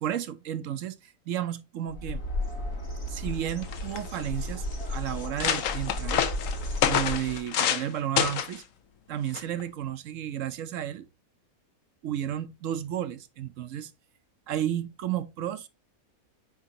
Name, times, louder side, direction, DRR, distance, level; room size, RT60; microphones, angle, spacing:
voice 1, 0.0-2.2 3.1-6.2 6.9-8.6 9.1-11.1 12.0-13.9 14.5-15.7, right 10 dB, 65° right, 0.9 m, -32 dB
Bird, 1.9-7.4, left 1 dB, 90° left, 4.7 m, -34 dB
sound 1, 3.3-3.4 3.6-4.2 4.8-4.9 5.2-7.9 8.2-8.6 9.3-9.6, left 9 dB, 65° left, 1.1 m, -27 dB
9.4 x 3.7 x 2.8 m
omnidirectional pair, 1.6 m